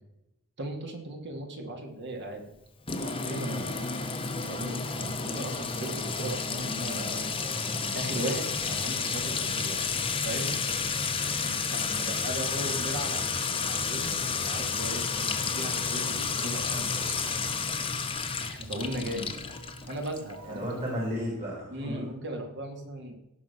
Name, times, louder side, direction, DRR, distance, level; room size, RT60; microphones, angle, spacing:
voice 1, 0.6-2.4 3.0-3.8 4.4-7.2 7.9-9.9 10.2-10.8 11.3-14.2 14.4-17.3 18.5-19.3 19.9-20.6 21.7-23.1, right 1 dB, 50° right, 2 dB, 2.6 m, -37 dB
Sink (filling or washing) / Trickle dribble / Fill (with liquid), 2.9-20.3, left 5 dB, 25° left, 1.0 m, -31 dB
sound 1, 3.6-20.8, right 2 dB, 80° right, 2.4 m, -55 dB
voice 2, 11.8-12.1 20.4-22.1, equal, 30° right, -3 dB, 3.3 m, -34 dB
16.5 x 5.6 x 6.0 m, 0.89 s
head